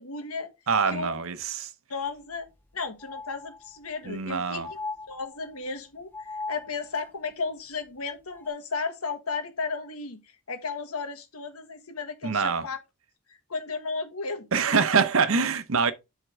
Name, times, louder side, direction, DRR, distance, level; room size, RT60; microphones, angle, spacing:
voice 1, 0.0-0.5 0.9-1.2 1.9-2.5 2.7-4.8 5.1-10.2 10.5-12.8 13.5-14.5, left 4 dB, 80° left, 1.4 m, -34 dB
voice 2, 0.7-1.7 4.1-4.7 12.2-12.6 14.5-15.9, right 5 dB, 70° right, 0.8 m, -24 dB
sound 1, 2.0-2.1 2.5-2.6 3.0-4.0 4.6-5.7 6.1-7.1 8.4-8.5, left 3 dB, 10° left, 0.3 m, -39 dB
7.9 x 3.7 x 4.8 m
head